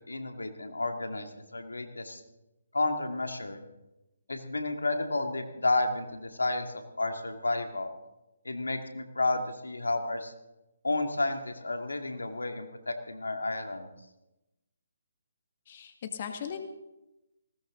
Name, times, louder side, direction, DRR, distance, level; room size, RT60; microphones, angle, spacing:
voice 1, 0.0-2.2 2.7-3.6 4.3-7.9 8.4-10.3 10.8-13.9, left 2 dB, 85° left, 5 dB, 2.2 m, -31 dB
voice 2, 15.7-16.6, left 8 dB, 40° left, 6 dB, 1.7 m, -38 dB
20.0 x 18.0 x 3.9 m, 0.97 s
figure-of-eight pair, 150°, 0 cm